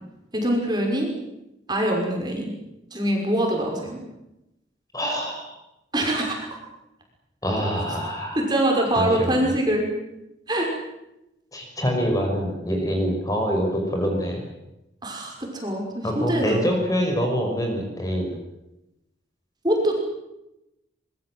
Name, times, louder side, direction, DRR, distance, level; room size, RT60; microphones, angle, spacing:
voice 1, 0.3-1.1 1.7-2.5 2.9-4.0 5.9-6.5 8.4-9.9 10.5-10.7 15.0-16.7 19.6-20.0, right 1 dB, 25° right, 1 dB, 5.8 m, -24 dB
voice 2, 4.9-5.5 7.4-8.4 8.9-9.3 11.5-14.4 16.0-18.3, equal, 20° left, 2 dB, 6.0 m, -25 dB
24.5 x 22.5 x 7.9 m, 0.91 s
head